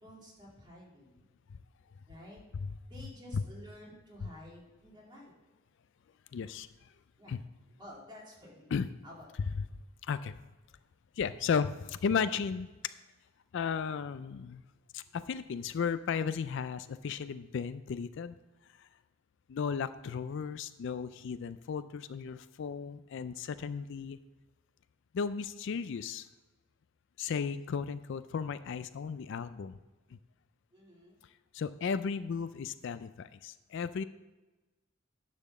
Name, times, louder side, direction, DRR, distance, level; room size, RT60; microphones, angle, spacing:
voice 1, 0.0-1.3 2.1-2.4 2.9-5.3 7.2-7.3 7.8-8.7 9.0-9.6 30.7-31.2, equal, 20° right, -4 dB, 2.6 m, -52 dB
voice 2, 6.3-6.9 7.3-7.4 8.7-8.9 9.5-9.6 10.1-10.3 11.2-12.7 13.5-14.6 14.9-18.3 18.8-18.9 19.5-24.2 25.1-26.3 27.2-29.8 30.1-30.2 31.5-34.0, left 6 dB, 60° left, 13 dB, 0.4 m, -35 dB
10.0 x 4.2 x 6.6 m, 1.2 s
head